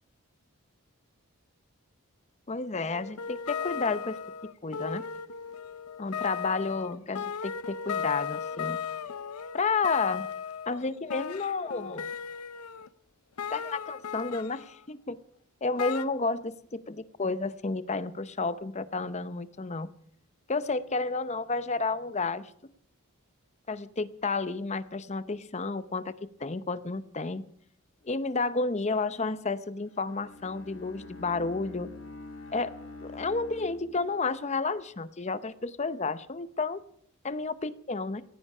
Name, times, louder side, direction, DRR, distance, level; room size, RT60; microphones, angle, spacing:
voice 1, 2.5-4.2 4.6-5.0 6.0-8.8 9.5-10.3 10.7-12.1 13.5-15.2 15.6-19.9 20.5-22.5 23.7-26.1 26.4-27.5 28.0-31.9 32.5-32.7 33.0-36.8 37.2-38.2, left 3 dB, 30° left, 14 dB, 0.7 m, -31 dB
sound 1, 2.9-12.9 13.4-14.8 15.8-16.0, left 7 dB, 85° left, 0.7 m, -36 dB
Bowed string instrument, 29.8-34.5, left 3 dB, 65° left, 2.2 m, -46 dB
17.5 x 14.5 x 5.5 m, 0.67 s
head